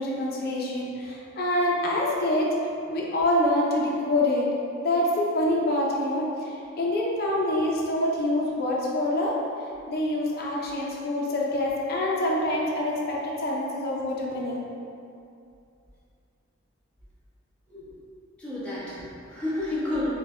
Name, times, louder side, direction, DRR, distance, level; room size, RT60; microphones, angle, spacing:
voice 1, 0.0-2.5 2.9-4.5 4.8-9.3 9.9-14.7, left 1 dB, 45° left, -4 dB, 0.6 m, -26 dB
voice 2, 18.4-20.1, left 1 dB, 5° left, -11 dB, 1.0 m, -31 dB
4.6 x 2.2 x 3.2 m, 2.5 s
head